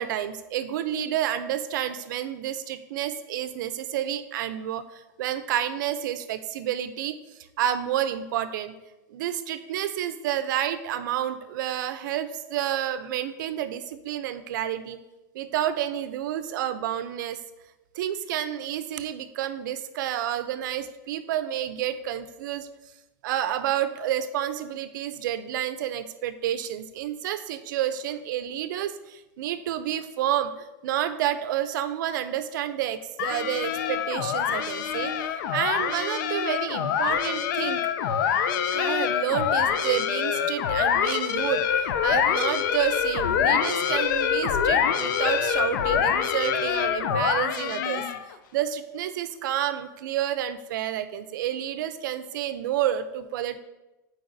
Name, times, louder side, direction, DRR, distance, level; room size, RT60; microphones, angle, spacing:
voice 1, 0.0-7.2 7.6-8.7 9.1-15.0 15.3-17.4 18.0-22.7 23.2-37.9 38.7-48.0 48.5-53.6, right 11 dB, 75° right, 11 dB, 0.5 m, -29 dB
sound 1, 33.2-48.3, left 8 dB, 80° left, 0.5 m, -25 dB
7.8 x 4.6 x 2.6 m, 1.0 s
supercardioid pair, 160°, 11 cm